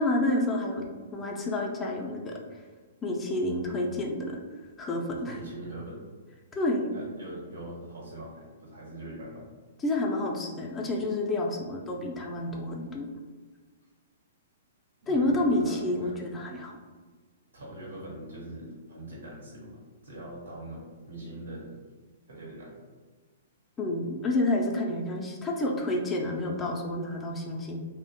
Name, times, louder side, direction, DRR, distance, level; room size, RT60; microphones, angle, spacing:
voice 1, 0.0-2.4 3.0-4.4 4.8-5.4 6.5-6.9 9.8-13.1 15.1-16.7 23.8-27.8, left 1 dB, 20° left, 0 dB, 0.4 m, -29 dB
voice 2, 5.3-6.0 6.9-9.4 15.0-16.2 17.5-21.8 22.3-22.8, right 1 dB, 80° right, -3 dB, 1.1 m, -42 dB
2.6 x 2.1 x 2.6 m, 1.3 s
hypercardioid pair, 120°, 0 cm